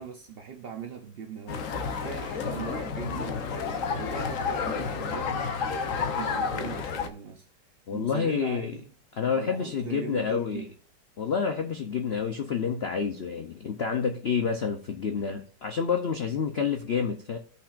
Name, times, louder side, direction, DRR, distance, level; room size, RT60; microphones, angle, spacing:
voice 1, 0.0-1.7 2.0-5.5 5.9-7.5 7.9-8.9 9.3-10.7, right 7 dB, 65° right, 0.5 m, -40 dB
sound 1, 1.5-7.1, left 5 dB, 55° left, 1.0 m, -30 dB
voice 2, 7.9-8.8 9.2-10.7 11.2-17.4, left 6 dB, 70° left, 0.5 m, -28 dB
17.0 x 5.8 x 2.5 m
omnidirectional pair, 2.0 m